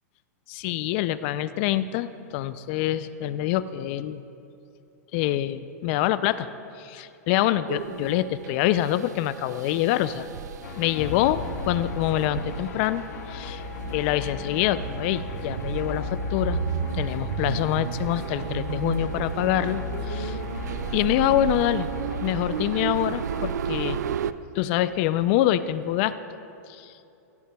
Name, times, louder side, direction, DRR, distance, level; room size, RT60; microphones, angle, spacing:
voice 1, 0.5-4.2 5.1-6.5 6.8-10.3 10.8-13.6 13.9-16.6 16.9-20.4 20.9-21.9 22.2-24.0 24.5-26.1 26.7-26.9, left 13 dB, 45° left, 14 dB, 0.4 m, -25 dB
sound 1, 7.7-24.3, right 9 dB, 85° right, 0.4 m, -33 dB
sound 2, 10.6-23.5, left 7 dB, 70° left, 0.7 m, -36 dB
15.5 x 14.0 x 2.3 m, 2.8 s
hypercardioid pair, 140°, 9 cm